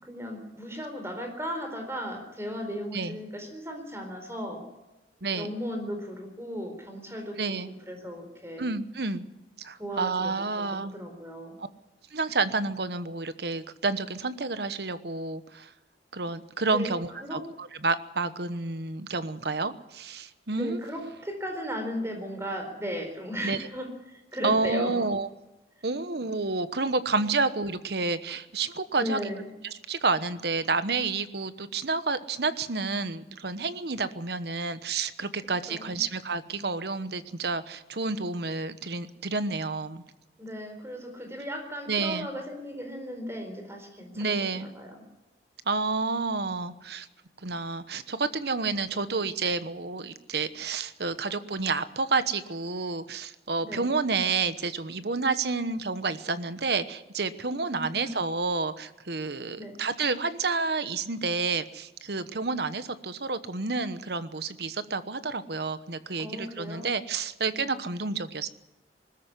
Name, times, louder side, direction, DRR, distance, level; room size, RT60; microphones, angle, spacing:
voice 1, 0.0-4.6 5.3-7.6 7.9-8.7 9.8-11.6 16.7-16.9 17.2-17.5 20.5-25.0 29.0-29.5 35.7-36.0 40.4-45.0 53.6-53.9 57.6-58.1 59.6-59.8 66.2-66.9 67.6-67.9, equal, 15° right, 5 dB, 4.3 m, -36 dB
voice 2, 5.2-5.5 7.4-7.7 8.6-9.2 9.6-10.9 11.6-11.7 12.1-15.7 16.1-20.8 23.4-23.7 24.4-25.3 25.8-29.2 29.9-40.0 41.9-42.3 44.1-44.7 45.7-47.1 47.4-68.5, right 4 dB, 60° right, 13 dB, 1.1 m, -30 dB
20.5 x 14.0 x 9.8 m, 1.0 s
head